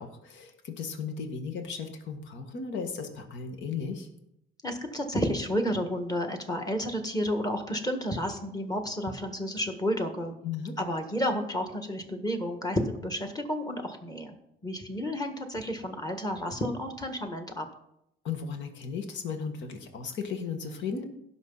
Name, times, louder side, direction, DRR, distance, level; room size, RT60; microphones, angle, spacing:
voice 1, 0.0-4.1 10.4-10.7 18.2-21.0, left 5 dB, 65° left, 6 dB, 1.7 m, -35 dB
voice 2, 4.6-10.4 10.8-14.3 14.6-17.7, equal, 20° left, 5 dB, 1.7 m, -31 dB
16.5 x 6.1 x 4.1 m, 0.80 s
cardioid pair, 110°, 20 cm